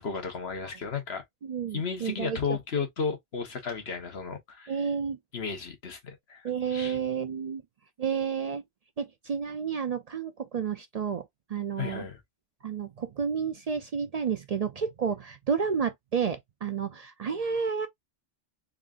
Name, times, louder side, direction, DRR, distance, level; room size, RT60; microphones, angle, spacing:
voice 1, 0.0-1.2 1.7-4.7 5.3-7.0 11.8-12.2, left 5 dB, 85° left, 1.5 m, -34 dB
voice 2, 1.4-2.6 4.7-5.2 6.4-7.6 8.0-8.6 9.0-12.1 12.6-17.9, right 6 dB, 50° right, 0.5 m, -31 dB
3.9 x 3.6 x 2.4 m
omnidirectional pair, 1.0 m